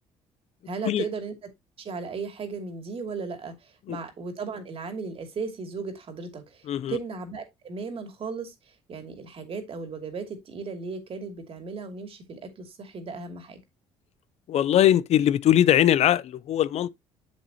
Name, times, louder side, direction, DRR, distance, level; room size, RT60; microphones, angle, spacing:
voice 1, 0.7-1.5 1.8-13.6, right 4 dB, 45° right, 2.6 m, -36 dB
voice 2, 6.7-7.0 14.5-16.9, left 11 dB, 55° left, 0.5 m, -21 dB
7.4 x 7.3 x 2.9 m
supercardioid pair, 80°, 13 cm